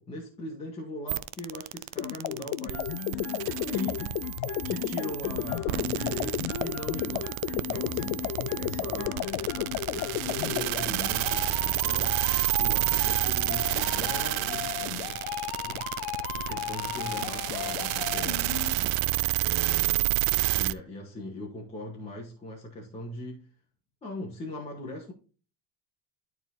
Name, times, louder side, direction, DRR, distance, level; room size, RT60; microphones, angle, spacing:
voice 1, 0.0-3.2 3.5-4.1 4.6-12.2 12.6-15.2 15.6-15.8 16.3-19.0 19.4-23.5 24.0-25.1, left 1 dB, 15° left, 2.0 m, -40 dB
sound 1, 1.1-20.7, right 19 dB, 55° right, 0.5 m, -30 dB
sound 2, 2.0-10.7, left 14 dB, 45° left, 0.5 m, -32 dB
sound 3, 2.7-18.7, left 12 dB, 90° left, 1.3 m, -38 dB
13.5 x 4.5 x 4.2 m
cardioid pair, 165°, 41 cm